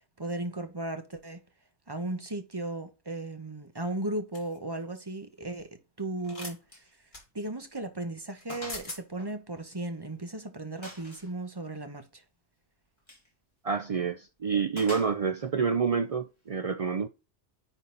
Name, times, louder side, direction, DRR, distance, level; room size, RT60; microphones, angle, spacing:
voice 1, 0.2-1.4 1.9-5.7 6.0-6.6 7.3-12.2, right 2 dB, 20° right, 1.1 m, -36 dB
sound 1, 4.3-4.6 6.2-6.6 7.1-7.2 8.4-8.5 8.7-9.0, left 2 dB, 45° left, 2.8 m, -40 dB
Gunshot gunfire, 6.7-6.9 7.2-7.4 7.8-7.9 8.5-8.9 9.2-10.2 10.8-11.3 13.0-13.3 14.8-15.5, left 1 dB, 25° left, 2.4 m, -45 dB
voice 2, 13.6-17.1, right 5 dB, 60° right, 0.3 m, -28 dB
10.0 x 4.1 x 4.0 m
omnidirectional pair, 1.2 m